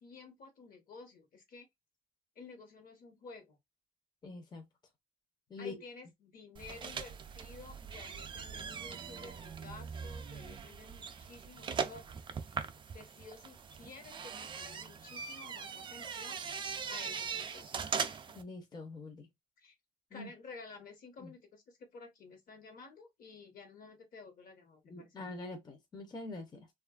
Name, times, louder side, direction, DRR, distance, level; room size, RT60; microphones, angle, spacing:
voice 1, 0.0-1.7 2.4-3.6 5.6-12.2 12.9-16.4 16.9-17.9 19.6-19.7 20.1-25.1, left 4 dB, 55° left, 1.1 m, -52 dB
voice 2, 4.2-4.6 5.5-5.8 18.3-19.3 20.1-20.3 21.2-21.3 24.8-26.7, left 3 dB, 25° left, 0.7 m, -44 dB
sound 1, 6.6-18.4, right 6 dB, 30° right, 0.4 m, -41 dB
2.7 x 2.4 x 2.3 m
cardioid pair, 110°, 17 cm